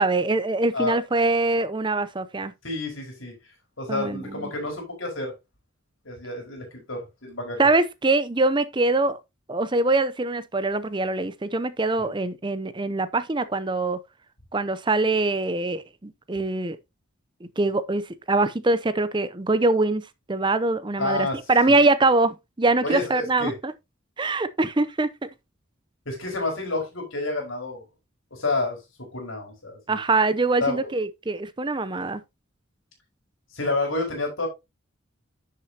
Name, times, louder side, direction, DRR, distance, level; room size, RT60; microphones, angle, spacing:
voice 1, 0.0-2.5 3.9-4.4 7.6-9.2 9.5-14.0 14.5-16.8 17.4-23.7 24.2-25.3 29.9-32.2, right 2 dB, 25° right, 0.6 m, -23 dB
voice 2, 2.6-3.3 3.8-5.3 6.0-7.6 12.0-12.1 21.0-21.4 21.7-21.8 22.8-23.5 26.0-27.8 28.3-28.8 29.1-30.0 30.6-30.9 33.5-34.5, left 2 dB, 75° left, 4.7 m, -29 dB
11.0 x 6.7 x 2.8 m
head